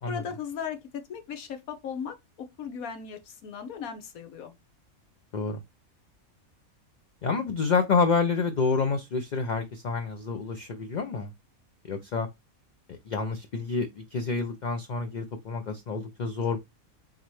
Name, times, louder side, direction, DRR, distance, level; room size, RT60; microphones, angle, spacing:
voice 1, 0.0-4.5, left 7 dB, 80° left, 1.4 m, -37 dB
voice 2, 7.2-11.3 11.9-12.3 12.9-16.6, left 4 dB, 55° left, 0.5 m, -28 dB
4.2 x 3.9 x 3.1 m
omnidirectional pair, 1.5 m